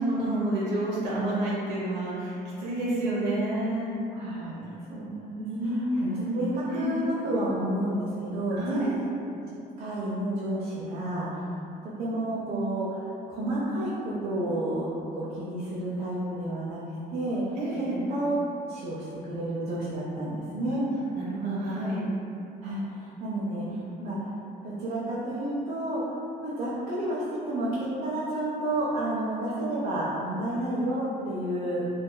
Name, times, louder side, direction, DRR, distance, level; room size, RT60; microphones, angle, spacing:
voice 1, 0.0-3.9 5.4-5.9 6.2-6.3 6.7-6.9 8.5-8.9 17.6-18.0 21.1-22.0, right 1 dB, 85° right, -6 dB, 0.8 m, -29 dB
voice 2, 4.1-9.0 9.8-11.5 11.8-14.9 15.1-16.8 17.1-18.3 18.6-20.8 22.6-24.2 24.6-26.0 26.4-31.8, right 1 dB, 50° right, -9 dB, 0.6 m, -31 dB
2.6 x 2.3 x 2.2 m, 2.7 s
supercardioid pair, 85°, 18 cm